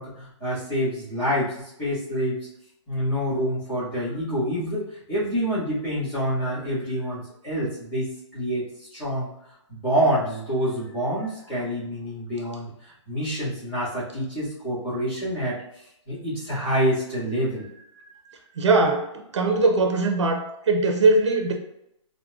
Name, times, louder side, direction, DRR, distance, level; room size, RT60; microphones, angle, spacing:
voice 1, 0.0-1.5 1.8-2.4 2.9-8.6 8.9-9.3 9.7-15.6 16.1-18.2, equal, 10° left, -12 dB, 1.5 m, -27 dB
voice 2, 18.6-21.5, right 3 dB, 65° right, 4 dB, 0.6 m, -21 dB
4.6 x 2.2 x 2.4 m, 0.79 s
hypercardioid pair, 170°, 16 cm